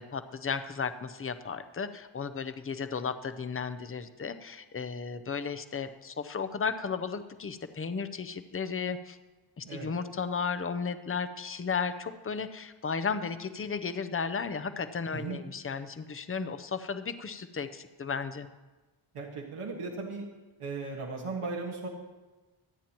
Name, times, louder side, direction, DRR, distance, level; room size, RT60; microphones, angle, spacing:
voice 1, 0.0-9.2 9.6-18.5, left 5 dB, 25° left, 10 dB, 0.6 m, -34 dB
voice 2, 19.1-20.3 20.6-21.9, right 4 dB, 90° right, -2 dB, 1.6 m, -36 dB
24.5 x 9.1 x 3.0 m, 1.2 s
wide cardioid pair, 145°, 49 cm